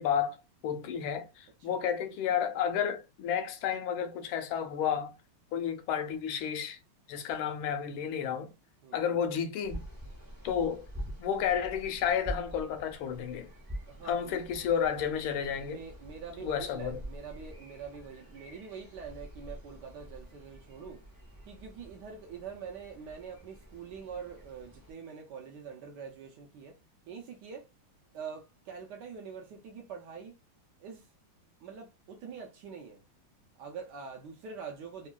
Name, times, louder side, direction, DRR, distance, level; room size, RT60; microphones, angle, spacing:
voice 1, 0.0-5.1 5.5-6.8 7.1-8.5 8.9-9.8 10.4-10.9 11.2-13.5 14.1-15.8 16.4-17.0, left 8 dB, 80° left, 1.4 m, -31 dB
voice 2, 8.8-9.3 13.8-14.4 15.6-21.0 21.5-26.8 27.1-27.7 28.1-30.4 30.8-31.1 31.6-33.0 33.6-35.1, right 6 dB, 75° right, 1.0 m, -45 dB
sound 1, 9.6-24.9, equal, 25° right, 0.4 m, -46 dB
3.6 x 2.2 x 2.3 m
omnidirectional pair, 2.4 m